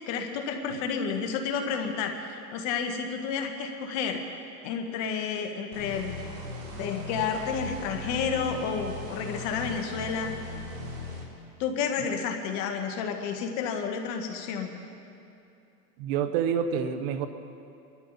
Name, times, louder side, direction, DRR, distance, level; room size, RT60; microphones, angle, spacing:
voice 1, 0.1-6.2 6.8-10.3 11.6-14.7, left 6 dB, 35° left, 4 dB, 1.4 m, -31 dB
sound 1, 5.7-11.2, left 2 dB, 60° right, 3.5 m, -38 dB
voice 2, 16.0-17.3, right 7 dB, 35° right, 9 dB, 0.8 m, -27 dB
23.0 x 12.5 x 4.0 m, 2.8 s
hypercardioid pair, 140°, 48 cm